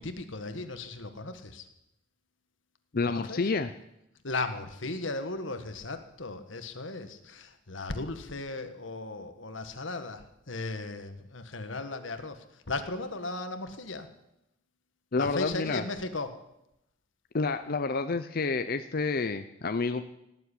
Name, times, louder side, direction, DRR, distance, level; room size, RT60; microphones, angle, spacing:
voice 1, 0.0-1.7 3.1-3.4 4.2-14.1 15.2-16.3, left 2 dB, 85° left, 8 dB, 1.6 m, -36 dB
voice 2, 2.9-3.7 15.1-15.8 17.3-20.0, left 4 dB, 50° left, 9 dB, 0.7 m, -29 dB
18.0 x 7.9 x 10.0 m, 0.85 s
head